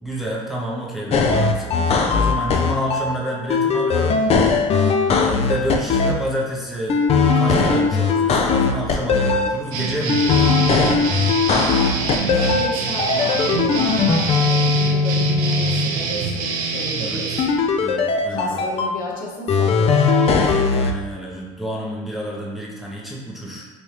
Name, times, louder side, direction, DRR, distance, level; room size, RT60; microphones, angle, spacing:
voice 1, 0.0-4.2 5.1-7.0 7.3-10.8 17.0-17.2 17.8-18.7 20.7-23.6, equal, ahead, -4 dB, 0.6 m, -29 dB
sound 1, 1.1-3.1 3.5-6.1 6.9-9.5 10.1-12.7 13.0-15.9 17.4-18.9 19.5-20.9, left 4 dB, 35° left, 0.4 m, -19 dB
sound 2, 9.7-17.5, right 5 dB, 80° right, 0.5 m, -25 dB
voice 2, 11.5-17.4 18.3-20.6, left 1 dB, 50° left, -2 dB, 0.8 m, -32 dB
3.2 x 2.6 x 3.1 m, 1.4 s
hypercardioid pair, 80°, 18 cm